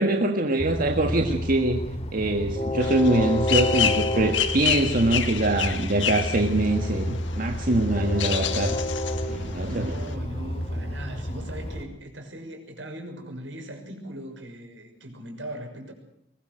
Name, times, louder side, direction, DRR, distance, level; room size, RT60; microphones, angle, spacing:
voice 1, 0.0-1.9 2.1-8.8 9.3-9.9, right 2 dB, 50° right, 4 dB, 1.7 m, -24 dB
Train, 0.6-11.8, left 1 dB, 35° left, 2.9 m, -30 dB
sound 1, 2.8-10.1, left 9 dB, 80° left, 1.8 m, -30 dB
voice 2, 9.6-15.9, right 1 dB, 80° right, 4 dB, 6.4 m, -38 dB
22.5 x 20.5 x 6.3 m, 0.74 s
head